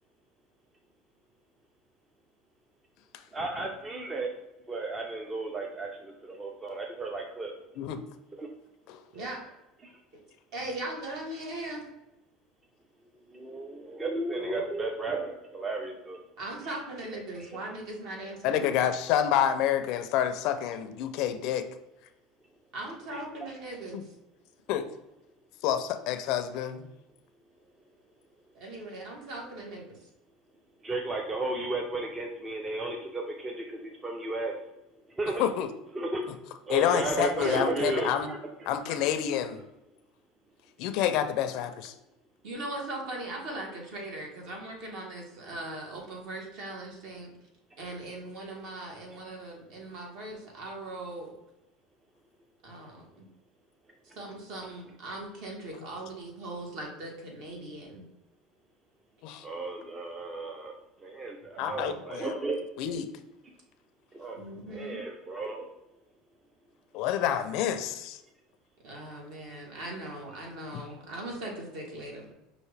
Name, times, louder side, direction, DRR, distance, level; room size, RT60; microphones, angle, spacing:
voice 1, 3.3-4.3 4.7-7.5 8.4-8.5 13.3-16.2 16.7-16.8 17.3-17.5 30.8-34.6 35.2-35.5 35.9-36.2 36.6-38.9 59.4-60.7 61.0-62.6 64.1-64.4 64.7-65.6, right 2 dB, 20° right, 2 dB, 0.5 m, -34 dB
voice 2, 10.5-11.8 16.4-18.8 22.7-24.0 28.5-29.8 42.4-47.3 47.8-51.3 52.6-53.2 54.1-58.0 61.6-61.9 64.4-65.0 68.8-72.3, right 1 dB, 60° right, -1 dB, 1.5 m, -39 dB
voice 3, 18.4-21.7 23.9-24.0 24.7-24.9 25.6-26.9 35.4-35.7 36.7-38.3 38.7-39.6 40.8-41.9 55.7-55.9 59.2-59.4 61.6-62.4 62.8-63.1 66.9-68.2 70.7-70.8, left 10 dB, 60° left, 9 dB, 0.4 m, -28 dB
5.6 x 2.6 x 3.3 m, 0.95 s
cardioid pair, 140°, 0 cm